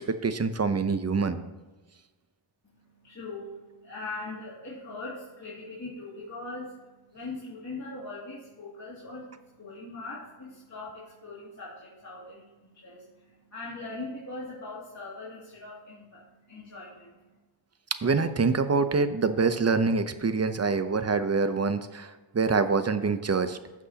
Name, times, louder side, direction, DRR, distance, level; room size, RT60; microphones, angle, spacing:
voice 1, 0.0-1.4 18.0-23.6, right 4 dB, 30° right, 10 dB, 0.7 m, -25 dB
voice 2, 2.6-17.4, left 2 dB, 35° left, -8 dB, 2.5 m, -41 dB
15.0 x 6.1 x 2.9 m, 1.2 s
cardioid pair, 65°, 50 cm